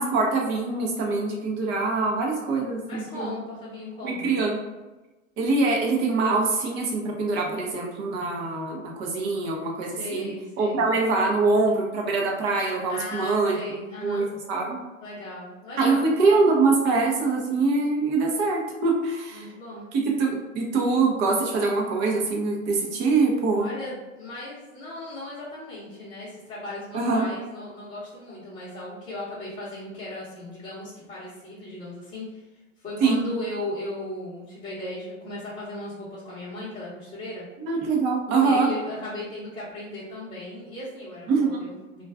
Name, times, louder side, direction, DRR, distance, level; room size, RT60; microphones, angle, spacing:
voice 1, 0.0-3.3 4.0-4.6 5.4-10.3 10.6-13.6 14.0-14.8 15.8-19.5 19.9-23.7 26.9-27.3 33.0-33.2 37.7-38.7 41.3-41.7, right 3 dB, 25° right, 0 dB, 0.5 m, -24 dB
voice 2, 2.9-4.3 9.8-10.9 12.9-14.3 15.0-16.1 19.3-19.9 23.5-32.4 32.8-37.4 38.4-42.0, left 1 dB, 20° left, -11 dB, 0.8 m, -37 dB
2.3 x 2.3 x 3.4 m, 1.1 s
hypercardioid pair, 120°, 40 cm